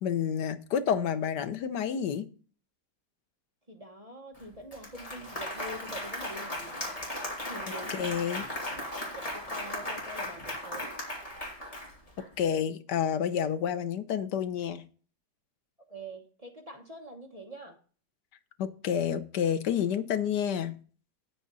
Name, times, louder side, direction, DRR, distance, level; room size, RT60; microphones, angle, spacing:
voice 1, 0.0-2.3 7.9-8.5 12.4-14.8 18.6-20.8, left 8 dB, 85° left, 10 dB, 1.5 m, -29 dB
voice 2, 3.7-6.9 7.4-8.0 9.2-10.9 15.9-17.8, right 1 dB, 25° right, 3 dB, 1.1 m, -45 dB
Applause, 4.3-4.4 4.7-12.2, left 1 dB, 20° left, 3.1 m, -37 dB
9.4 x 8.3 x 4.0 m, 0.40 s
omnidirectional pair, 1.8 m